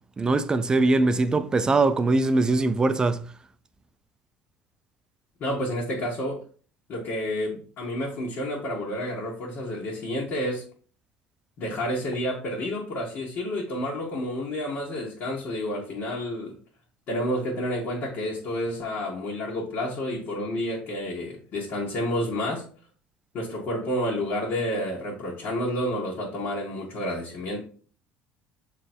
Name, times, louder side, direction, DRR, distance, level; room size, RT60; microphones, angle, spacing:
voice 1, 0.2-3.3, right 3 dB, 20° right, 0.5 m, -22 dB
voice 2, 5.4-6.4 6.9-10.6 11.6-16.6 17.1-22.6 23.3-27.6, left 1 dB, 55° left, 2.1 m, -30 dB
6.7 x 3.3 x 4.5 m
cardioid pair, 120°, 4 cm